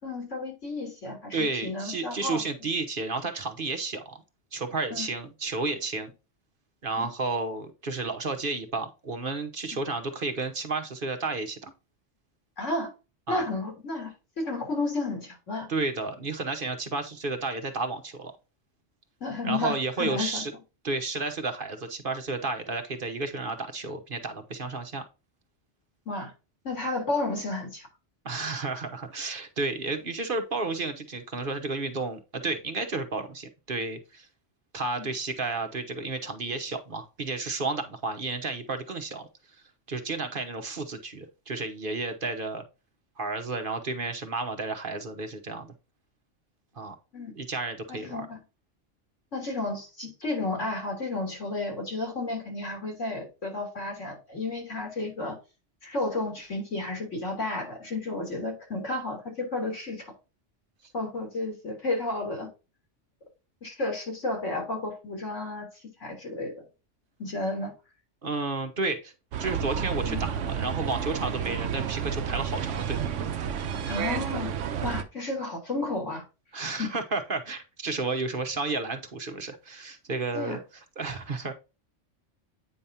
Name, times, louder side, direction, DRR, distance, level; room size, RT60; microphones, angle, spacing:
voice 1, 0.0-2.7 4.9-5.1 7.0-7.1 12.6-12.9 13.3-15.7 19.2-20.4 26.1-26.3 26.6-27.9 35.0-35.1 47.1-47.3 47.9-48.4 49.3-55.4 55.8-60.1 60.9-62.5 63.6-65.7 66.0-66.6 67.2-67.7 70.0-70.2 73.9-74.5 74.8-76.3 76.8-76.9 80.3-80.6, left 2 dB, 80° left, 3.7 m, -32 dB
voice 2, 1.3-4.2 4.5-6.1 6.8-11.7 13.3-13.5 15.7-18.3 19.4-20.5 20.8-25.0 28.2-34.3 34.7-39.3 39.9-42.6 43.2-45.7 46.8-46.9 47.3-48.2 68.2-69.1 69.4-73.0 76.5-80.6 81.0-81.5, right 3 dB, 50° right, 1.2 m, -32 dB
sound 1, 69.3-75.0, right 8 dB, 85° right, 1.1 m, -31 dB
9.2 x 5.3 x 2.8 m
omnidirectional pair, 1.2 m